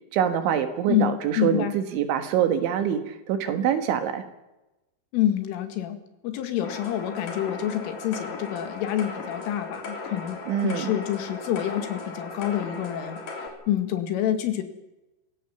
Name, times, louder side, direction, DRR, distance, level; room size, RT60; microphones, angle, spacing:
voice 1, 0.1-4.2 10.5-10.9, right 9 dB, 75° right, 8 dB, 3.8 m, -25 dB
voice 2, 0.9-1.7 5.1-6.0 6.2-13.2 13.7-14.6, left 11 dB, 80° left, 8 dB, 4.5 m, -27 dB
sound 1, 6.6-13.5, left 3 dB, 45° left, 4.6 m, -37 dB
25.5 x 16.5 x 7.2 m, 1.0 s
omnidirectional pair, 5.7 m